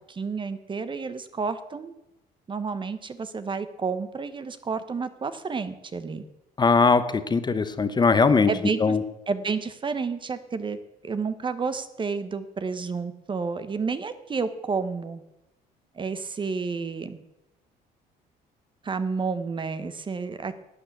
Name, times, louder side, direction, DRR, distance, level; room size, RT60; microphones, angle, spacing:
voice 1, 0.0-1.9 2.5-6.2 8.5-9.0 9.3-10.8 11.0-15.2 15.9-17.2 18.8-20.6, right 5 dB, 30° right, 12 dB, 1.0 m, -30 dB
voice 2, 6.6-8.5 8.8-9.0, left 4 dB, 25° left, 11 dB, 0.9 m, -20 dB
12.0 x 8.7 x 8.3 m, 0.90 s
cardioid pair, 110°, 17 cm